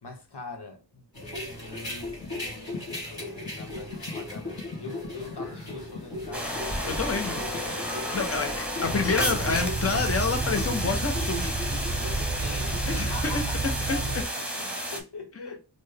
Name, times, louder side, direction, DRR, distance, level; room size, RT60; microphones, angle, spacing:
voice 1, 0.0-1.1 1.4-6.7 7.4-8.9 12.4-12.7 13.0-15.6, left 3 dB, 90° left, 0.9 m, -43 dB
sound 1, 1.1-13.2, left 2 dB, 65° left, 1.8 m, -37 dB
sound 2, 6.3-15.0, equal, 5° right, 0.9 m, -32 dB
voice 2, 6.9-7.4 8.1-8.5 8.8-11.5 12.9-13.4 13.9-14.0, left 4 dB, 35° left, 0.7 m, -28 dB
sound 3, 8.9-14.2, right 3 dB, 35° right, 0.6 m, -31 dB
4.2 x 2.2 x 3.3 m
wide cardioid pair, 45°, 39 cm